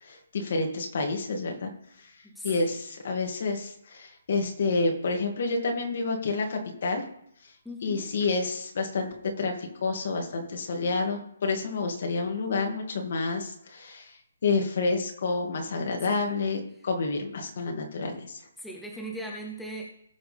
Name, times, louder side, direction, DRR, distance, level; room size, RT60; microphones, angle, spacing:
voice 1, 0.0-1.7 2.0-2.1 2.4-7.0 7.8-9.1 9.4-14.1 14.4-18.4, left 3 dB, 50° left, 2 dB, 2.3 m, -29 dB
voice 2, 2.2-2.8 7.6-8.1 16.0-16.2 18.6-19.8, right 1 dB, ahead, -1 dB, 0.7 m, -39 dB
18.5 x 6.4 x 3.5 m, 0.72 s
hypercardioid pair, 170°, 0 cm